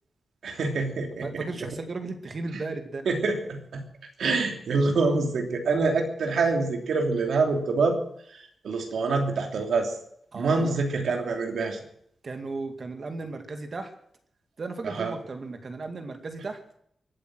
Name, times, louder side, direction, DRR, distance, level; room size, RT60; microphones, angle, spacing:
voice 1, 0.4-1.5 2.5-2.6 3.1-3.8 4.2-8.0 8.6-9.9 10.3-11.8 14.8-15.1, right 3 dB, 85° right, 3 dB, 3.0 m, -26 dB
voice 2, 1.2-3.1 10.3-10.8 12.2-13.9 14.6-16.6, right 3 dB, 45° right, 6 dB, 2.2 m, -35 dB
23.5 x 8.6 x 6.3 m, 0.68 s
wide cardioid pair, 130°, 0 cm